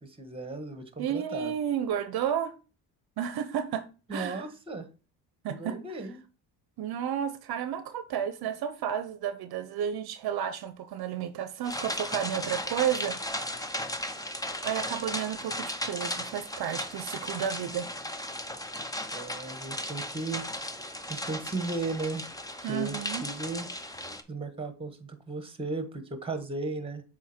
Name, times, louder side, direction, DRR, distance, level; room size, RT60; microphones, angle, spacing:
voice 1, 0.0-1.5 4.1-4.9 5.5-6.2 19.1-20.4 21.1-22.2 22.7-23.7 24.3-27.0, right 3 dB, 15° right, 1.4 m, -35 dB
voice 2, 1.0-2.5 3.2-4.5 5.4-5.8 6.8-13.7 14.6-17.9 22.6-23.3, right 9 dB, 60° right, 0.8 m, -32 dB
sound 1, 11.6-24.2, left 1 dB, 10° left, 0.7 m, -36 dB
7.2 x 4.5 x 4.4 m
cardioid pair, 105°, 42 cm